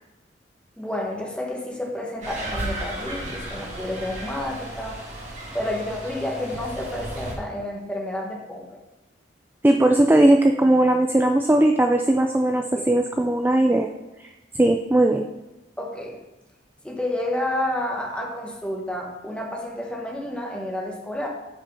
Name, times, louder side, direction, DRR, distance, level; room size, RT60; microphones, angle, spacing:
voice 1, 0.8-5.0 5.5-8.8 12.8-12.9 15.8-16.2 16.8-21.3, left 1 dB, 5° left, -1 dB, 1.3 m, -30 dB
sound 1, 2.2-7.3, right 1 dB, 40° right, 2.1 m, -34 dB
voice 2, 9.6-13.9 14.2-14.3 14.5-15.3, right 1 dB, 10° right, 4 dB, 0.3 m, -18 dB
8.6 x 5.2 x 5.5 m, 1.0 s
head